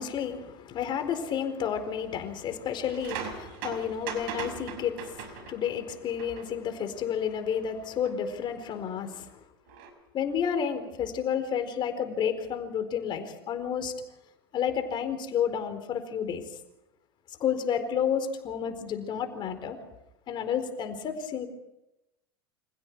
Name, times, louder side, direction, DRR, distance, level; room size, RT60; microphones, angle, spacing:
voice 1, 0.0-9.2 10.1-13.9 14.5-16.4 17.4-19.8 20.3-21.5, left 8 dB, 35° left, 8 dB, 4.3 m, -31 dB
sound 1, 2.8-5.8 6.2-6.5 8.0-8.1 9.7-9.9, right 7 dB, 60° right, 6.1 m, -39 dB
29.5 x 26.5 x 4.8 m, 0.90 s
hypercardioid pair, 90°, 13 cm